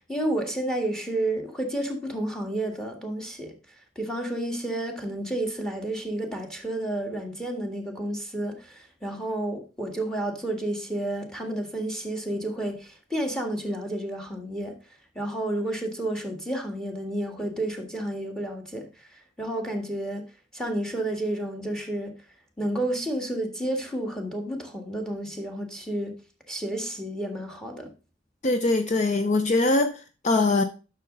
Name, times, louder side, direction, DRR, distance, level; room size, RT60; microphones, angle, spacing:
voice 1, 0.1-3.6 4.0-14.7 15.2-20.2 20.5-22.1 22.6-26.1 26.5-27.9, right 1 dB, 5° left, 1.8 m, -31 dB
voice 2, 28.4-30.6, left 2 dB, 40° left, 0.6 m, -22 dB
10.5 x 6.4 x 3.9 m
head